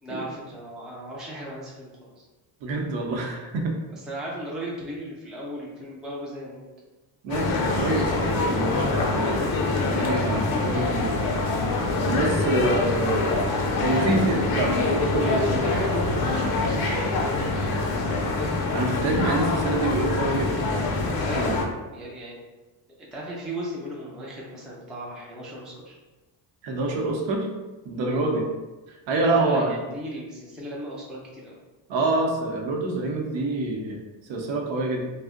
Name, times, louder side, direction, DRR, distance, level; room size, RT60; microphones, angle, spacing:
voice 1, 0.0-2.3 3.9-6.6 15.2-18.0 21.2-21.5 21.9-22.4 23.0-25.9 28.1-28.3 29.2-31.6, right 1 dB, ahead, -4 dB, 0.3 m, -36 dB
voice 2, 2.6-3.7 7.2-11.2 11.6-11.8 12.1-13.2 13.8-15.6 18.7-20.6 21.3-21.5 26.6-27.5 27.8-28.5 29.1-29.7 31.9-34.0 34.3-35.1, right 2 dB, 75° right, 1 dB, 0.7 m, -26 dB
sound 1, 7.3-21.6, left 3 dB, 55° left, 0.5 m, -25 dB
2.5 x 2.1 x 3.6 m, 1.2 s
cardioid pair, 140°, 45 cm